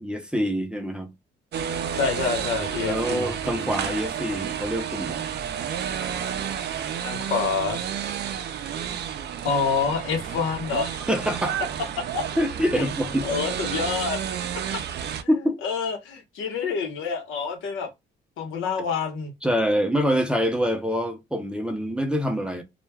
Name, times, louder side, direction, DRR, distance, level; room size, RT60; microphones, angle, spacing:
voice 1, 0.0-1.1 2.8-5.3 11.1-11.6 12.4-13.3 15.3-15.6 19.4-22.6, equal, 5° right, 0.6 m, -25 dB
sound 1, 1.5-15.2, right 8 dB, 60° right, 0.4 m, -31 dB
voice 2, 1.9-3.3 7.0-7.8 9.4-11.1 12.1-12.2 12.8-12.9 13.2-14.2 15.6-17.9 18.4-19.3, left 5 dB, 85° left, 0.9 m, -27 dB
2.3 x 2.1 x 3.3 m
cardioid pair, 90°, 20 cm